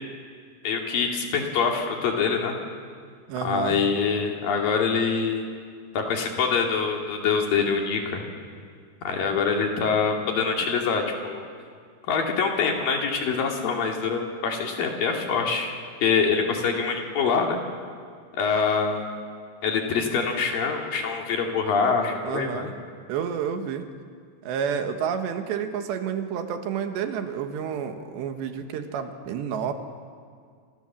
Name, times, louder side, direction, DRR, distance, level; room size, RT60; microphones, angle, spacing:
voice 1, 0.6-2.6 3.4-5.4 5.9-8.2 9.0-11.5 12.1-15.7 16.0-17.6 18.3-19.1 19.6-22.7, left 5 dB, 55° left, 1 dB, 4.2 m, -25 dB
voice 2, 3.3-3.8 22.2-22.7 23.1-23.9 24.4-29.7, right 7 dB, 90° right, 6 dB, 3.7 m, -30 dB
28.0 x 26.5 x 7.5 m, 2.1 s
omnidirectional pair, 4.9 m